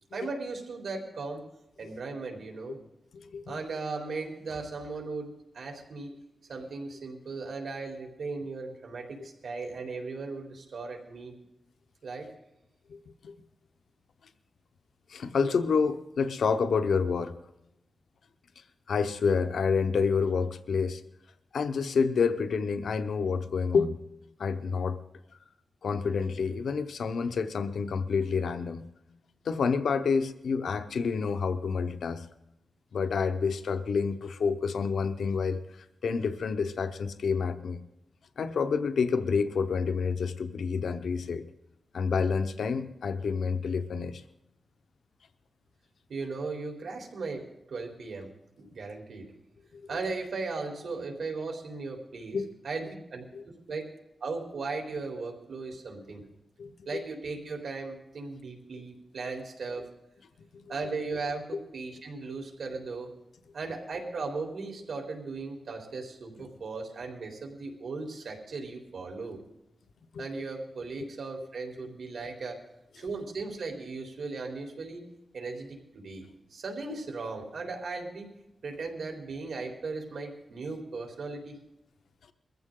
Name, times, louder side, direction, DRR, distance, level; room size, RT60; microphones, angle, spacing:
voice 1, 0.1-1.4 1.8-2.8 3.5-6.1 6.5-11.3 12.0-12.3 46.1-48.3 48.6-49.3 49.9-52.4 52.6-53.2 53.7-53.8 54.2-56.2 56.9-59.9 60.7-63.1 63.5-69.4 70.2-72.6 73.0-75.0 75.3-78.3 78.6-81.6, right 3 dB, 75° right, 2 dB, 3.8 m, -37 dB
voice 2, 3.1-3.6 12.9-13.0 13.2-13.3 15.1-17.3 18.9-21.0 21.5-24.0 24.4-25.0 25.8-28.9 29.4-32.3 32.9-35.6 36.0-37.8 38.4-41.4 41.9-44.2 49.9-50.0 52.3-52.5 53.3-53.4 56.6-57.0 60.6-60.7 70.1-70.2, left 5 dB, 80° left, 9 dB, 0.9 m, -28 dB
22.0 x 15.0 x 3.8 m, 0.87 s
wide cardioid pair, 165°, 0 cm